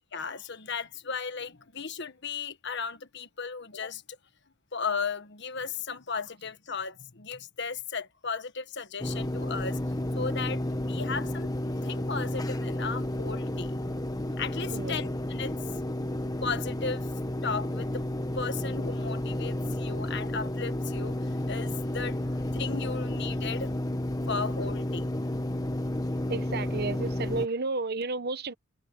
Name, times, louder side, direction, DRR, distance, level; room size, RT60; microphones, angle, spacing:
voice 1, 0.1-4.2 4.7-9.8 10.1-11.5 11.8-13.8 14.3-15.6 16.4-17.1 17.4-18.0 18.3-23.8 24.3-25.1, left 5 dB, 60° left, 1.4 m, -35 dB
sound 1, 9.0-27.5, left 1 dB, 20° left, 1.3 m, -31 dB
voice 2, 26.3-28.5, right 3 dB, 50° right, 1.0 m, -32 dB
head